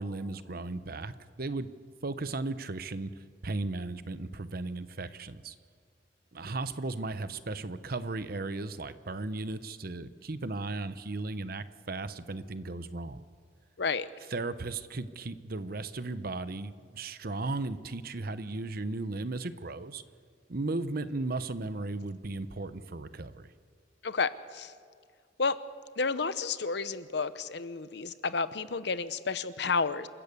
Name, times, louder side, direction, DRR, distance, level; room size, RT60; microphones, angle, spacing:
voice 1, 0.0-1.7 2.0-3.1 3.4-5.5 6.3-13.2 14.3-20.0 20.5-23.5, right 2 dB, 55° right, 12 dB, 0.9 m, -36 dB
voice 2, 13.8-14.1 24.0-24.7 25.4-25.6 26.0-30.1, left 4 dB, 65° left, 14 dB, 0.8 m, -31 dB
27.5 x 14.0 x 8.3 m, 2.1 s
head